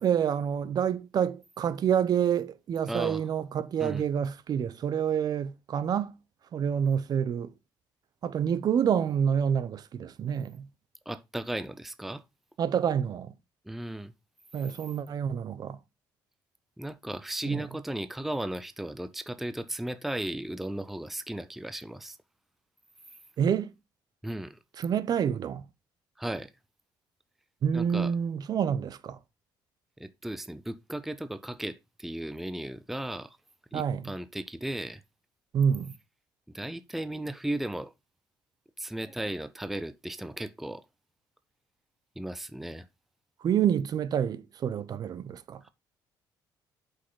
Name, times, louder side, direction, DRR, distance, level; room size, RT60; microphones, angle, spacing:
voice 1, 0.0-6.2 6.5-7.5 8.2-10.7 12.6-13.3 14.5-15.8 17.4-17.6 23.4-23.7 24.8-25.6 27.6-29.2 33.7-34.0 35.5-35.9 43.4-45.6, right 8 dB, 50° right, 0.8 m, -28 dB
voice 2, 2.9-3.3 3.8-4.0 11.1-12.2 13.7-14.1 16.8-22.2 24.2-24.6 26.2-26.5 27.7-28.1 30.0-33.4 33.7-35.0 36.5-37.9 38.8-40.8 42.2-42.9 45.6-45.7, right 1 dB, 5° right, 0.5 m, -35 dB
8.0 x 5.4 x 3.8 m
cardioid pair, 110°, 9 cm